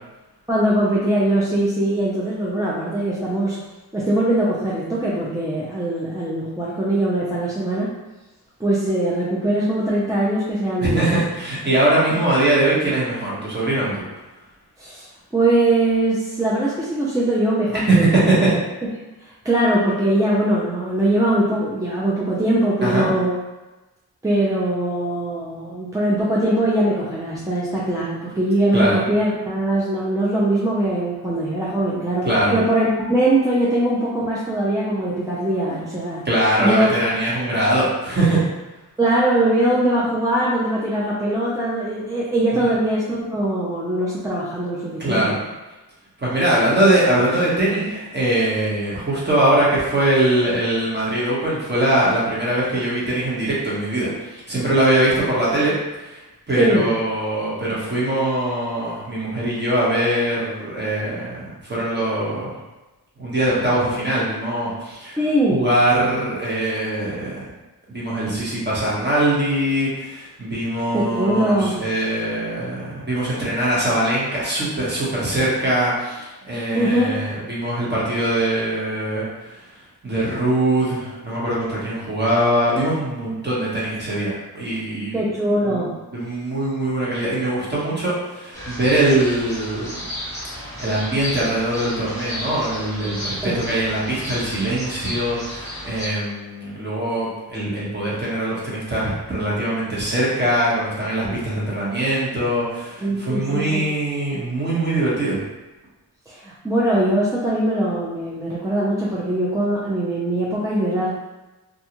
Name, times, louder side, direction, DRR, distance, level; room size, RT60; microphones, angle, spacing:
voice 1, 0.5-3.6 3.9-7.9 8.6-11.1 14.8-15.1 15.3-18.2 19.2-23.3 24.2-36.3 36.6-36.9 39.0-45.4 56.6-56.9 65.2-65.6 70.9-71.8 76.7-77.1 85.1-86.0 93.4-93.6 101.2-101.4 103.0-103.9 106.3-111.1, right 1 dB, 10° right, -7 dB, 0.4 m, -21 dB
voice 2, 10.8-14.0 17.7-18.5 22.8-23.1 28.7-29.0 32.2-32.5 36.2-38.4 42.6-42.7 45.0-45.4 46.2-62.5 63.2-65.2 65.5-67.5 67.9-79.6 80.0-85.2 85.6-85.8 86.1-90.0 90.8-105.4, right 1 dB, 25° right, -7 dB, 1.0 m, -22 dB
sound 1, 88.5-96.1, equal, 10° left, 1.2 m, -33 dB
2.5 x 2.3 x 2.9 m, 1.1 s
wide cardioid pair, 80°, 40 cm